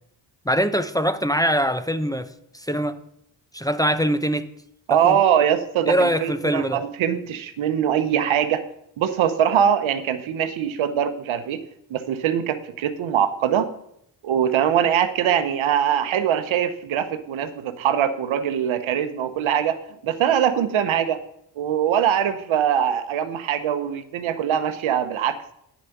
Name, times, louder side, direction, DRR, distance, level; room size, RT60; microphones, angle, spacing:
voice 1, 0.5-2.3 2.5-3.0 3.5-4.4 4.9-5.2 5.9-6.8, equal, 10° left, 9 dB, 0.6 m, -22 dB
voice 2, 4.9-8.6 9.0-11.6 11.9-13.7 14.2-19.8 20.0-21.2 21.6-25.5, right 9 dB, 85° right, 10 dB, 0.9 m, -22 dB
9.7 x 6.4 x 5.9 m, 0.75 s
cardioid pair, 55°, 47 cm